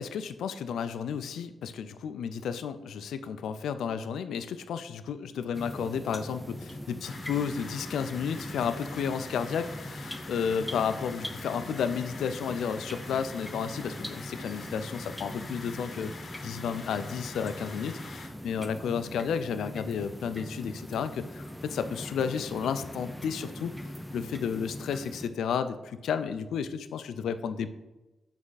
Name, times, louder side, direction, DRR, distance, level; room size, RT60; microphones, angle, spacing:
voice 1, 0.0-23.7 24.1-27.7, left 7 dB, 90° left, 11 dB, 0.4 m, -32 dB
sound 1, 5.5-25.3, left 1 dB, ahead, 0.5 m, -41 dB
sound 2, 7.0-18.3, left 3 dB, 50° left, 1.0 m, -45 dB
7.5 x 3.5 x 4.0 m, 1.1 s
cardioid pair, 90°, 0 cm